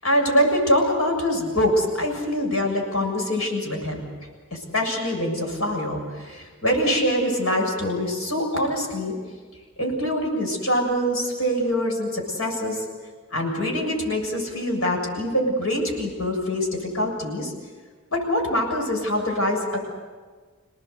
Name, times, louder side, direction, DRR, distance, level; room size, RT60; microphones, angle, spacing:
voice 1, 0.0-4.0 4.5-9.1 9.8-12.8 13.3-17.5 18.1-19.8, equal, 85° left, 1 dB, 7.2 m, -24 dB
29.5 x 18.5 x 8.1 m, 1.5 s
head